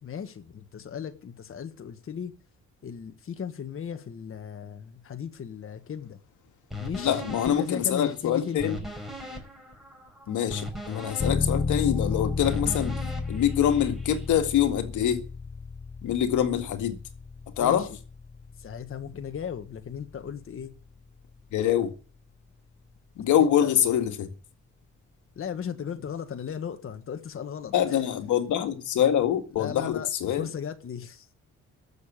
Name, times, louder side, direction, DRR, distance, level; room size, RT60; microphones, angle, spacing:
voice 1, 0.0-2.3 2.8-6.2 6.8-8.8 17.6-18.0 18.6-20.7 23.4-23.7 25.3-28.0 29.5-31.3, left 7 dB, 45° left, 1.5 m, -37 dB
sound 1, 6.7-14.3, left 1 dB, ahead, 5.6 m, -40 dB
voice 2, 7.0-8.8 10.3-13.0 13.3-15.2 16.0-17.0 17.6-17.9 21.5-21.9 23.2-24.3 27.7-30.5, left 10 dB, 75° left, 2.0 m, -25 dB
sound 2, 11.2-21.7, left 4 dB, 25° left, 0.6 m, -33 dB
14.0 x 6.9 x 8.6 m
cardioid pair, 90°, 30 cm